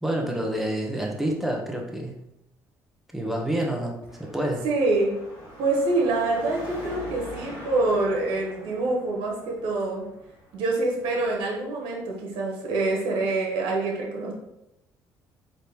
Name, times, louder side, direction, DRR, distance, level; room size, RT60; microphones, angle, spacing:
voice 1, 0.0-2.1 3.1-3.9 4.2-4.6, right 1 dB, 5° right, 0 dB, 1.0 m, -28 dB
Car passing by / Traffic noise roadway noise / Engine, 4.1-11.4, equal, 85° left, 1.1 m, -43 dB
voice 2, 4.6-5.1 5.6-10.0 10.5-14.3, right 2 dB, 80° right, -2 dB, 1.1 m, -25 dB
4.1 x 2.8 x 3.4 m, 0.90 s
supercardioid pair, 75°, 9 cm